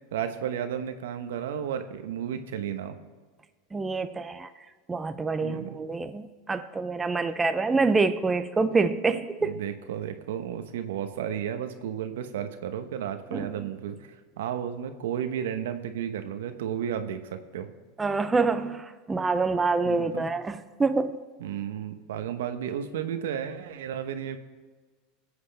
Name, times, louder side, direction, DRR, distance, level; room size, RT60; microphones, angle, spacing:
voice 1, 0.1-3.0 5.4-5.8 9.4-14.0 14.4-17.7 19.8-20.3 21.4-24.4, right 9 dB, 80° right, 8 dB, 1.0 m, -33 dB
voice 2, 3.7-4.5 4.9-9.5 13.3-13.7 18.0-21.2, right 4 dB, 15° right, 9 dB, 0.6 m, -26 dB
22.0 x 8.0 x 3.4 m, 1.4 s
supercardioid pair, 115°, 0 cm